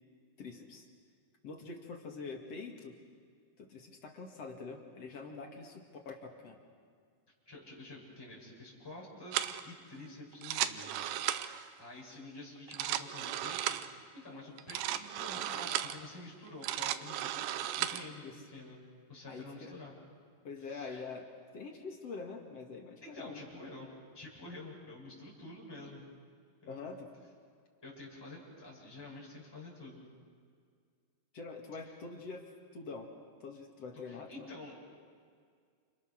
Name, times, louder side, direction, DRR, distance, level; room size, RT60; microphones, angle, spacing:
voice 1, 0.4-0.9 1.4-3.0 3.6-6.6 18.2-18.4 19.3-19.7 20.4-21.3 21.5-23.4 26.7-27.1 31.3-33.1 33.4-34.5, left 4 dB, 45° left, 2 dB, 2.8 m, -45 dB
voice 2, 7.5-10.9 11.2-11.5 11.8-18.8 19.1-19.9 20.6-21.1 23.0-23.9 24.1-26.0 26.6-26.9 27.8-30.0 34.0-34.8, left 2 dB, 5° left, -5 dB, 6.9 m, -49 dB
sound 1, 9.3-9.6 10.3-11.7 12.6-13.9 14.6-16.0 16.5-18.1, right 12 dB, 90° right, 3.0 m, -35 dB
30.0 x 29.5 x 6.6 m, 2.1 s
omnidirectional pair, 4.6 m